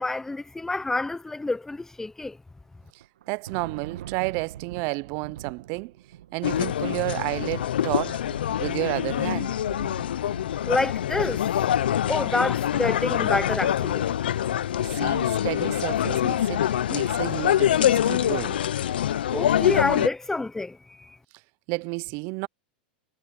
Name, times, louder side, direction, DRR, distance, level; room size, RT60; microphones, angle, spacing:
voice 1, 0.0-2.4 10.6-11.5 12.1-14.1 19.3-21.2, left 2 dB, 10° left, 0.9 m, -28 dB
Thunder, 2.8-12.3, right 11 dB, 75° right, 1.9 m, -44 dB
voice 2, 3.3-5.9 6.3-8.2 8.6-9.6 15.0-18.6 21.7-22.5, right 28 dB, 50° right, 0.7 m, -31 dB
sound 1, 6.4-20.1, left 11 dB, 80° left, 0.8 m, -25 dB
hypercardioid pair, 105°, 5 cm